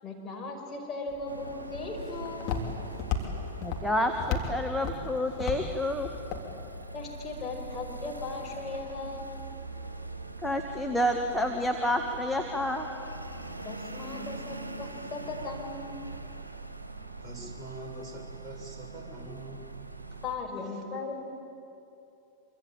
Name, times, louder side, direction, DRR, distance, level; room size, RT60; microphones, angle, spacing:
voice 1, 0.0-2.6 6.9-9.3 13.6-15.9 20.2-21.2, left 3 dB, 25° left, 0 dB, 5.1 m, -37 dB
Walk footsteps, 1.1-7.3, left 6 dB, 40° left, 3.4 m, -36 dB
sound 1, 1.3-20.4, right 2 dB, 80° right, 1.5 m, -42 dB
voice 2, 3.6-6.1 10.4-12.9, left 1 dB, ahead, 2 dB, 1.7 m, -29 dB
voice 3, 17.2-19.7 20.1-20.2 20.6-20.8, right 2 dB, 15° right, 0 dB, 6.1 m, -44 dB
26.0 x 25.0 x 8.9 m, 2.7 s
figure-of-eight pair, 90°, 0 cm